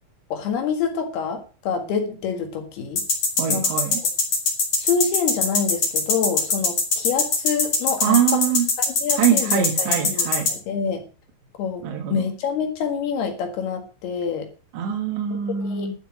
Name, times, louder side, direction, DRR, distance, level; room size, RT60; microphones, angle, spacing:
voice 1, 0.3-3.0 3.5-3.7 4.8-8.4 9.0-11.0 11.6-11.8 12.1-14.5 15.6-15.9, left 6 dB, 65° left, 5 dB, 3.6 m, -26 dB
sound 1, 3.0-10.5, left 4 dB, 40° left, 4.2 m, -21 dB
voice 2, 3.4-4.0 8.0-8.7 9.1-10.5 11.8-12.3 14.7-15.9, right 9 dB, 75° right, 2 dB, 3.7 m, -23 dB
12.0 x 8.1 x 6.0 m, 0.36 s
omnidirectional pair, 5.2 m